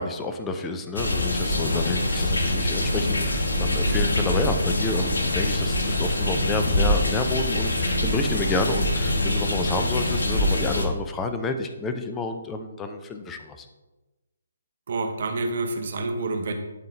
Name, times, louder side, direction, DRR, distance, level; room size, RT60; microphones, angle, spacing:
voice 1, 0.0-13.7, left 3 dB, 15° left, 6 dB, 0.6 m, -30 dB
sound 1, 0.9-10.9, left 1 dB, 70° left, 1.3 m, -24 dB
voice 2, 14.9-16.5, right 3 dB, 50° right, 5 dB, 1.0 m, -28 dB
11.5 x 4.4 x 3.2 m, 1.1 s
figure-of-eight pair, 140°, 0 cm